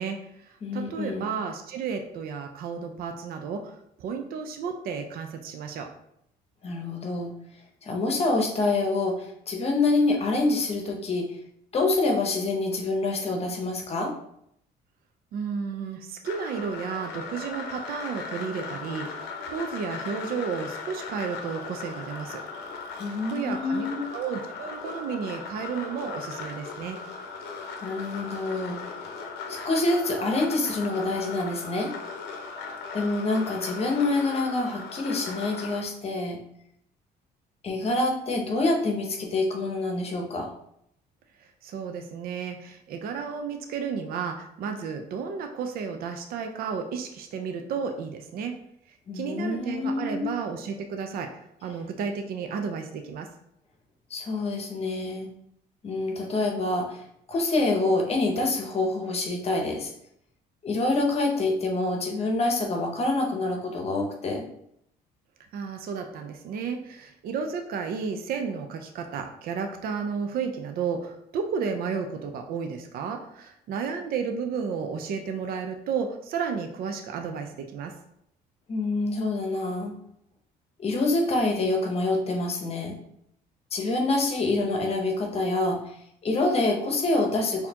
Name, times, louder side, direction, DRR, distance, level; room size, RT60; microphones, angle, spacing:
voice 1, 0.0-5.9 15.3-22.4 23.3-23.9 24.1-27.0 41.4-48.5 49.1-51.3 51.6-53.3 65.5-77.9, right 6 dB, 60° right, 5 dB, 0.5 m, -32 dB
voice 2, 0.6-1.3 6.6-7.3 7.8-11.3 11.7-14.1 23.0-24.0 27.8-28.8 29.5-31.9 32.9-36.4 37.6-40.5 49.1-50.4 54.1-55.3 55.8-57.0 57.3-59.9 60.6-64.5 78.7-80.0 80.8-83.0 83.7-85.9 86.2-87.7, left 2 dB, 35° left, 1 dB, 0.8 m, -26 dB
sound 1, 16.2-35.8, left 4 dB, 80° left, 0.6 m, -38 dB
4.1 x 2.7 x 2.8 m, 0.74 s
cardioid pair, 110°, 17 cm